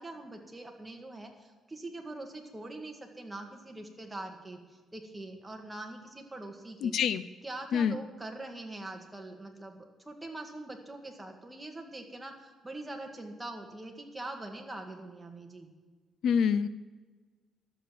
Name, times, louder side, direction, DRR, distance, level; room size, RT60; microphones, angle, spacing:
voice 1, 0.0-6.9 7.4-15.7, right 2 dB, 15° right, 3 dB, 2.0 m, -43 dB
voice 2, 6.8-7.2 7.7-7.9 16.2-16.7, left 7 dB, 70° left, 15 dB, 0.4 m, -26 dB
12.0 x 7.8 x 7.5 m, 1.4 s
cardioid pair, 90°, 0 cm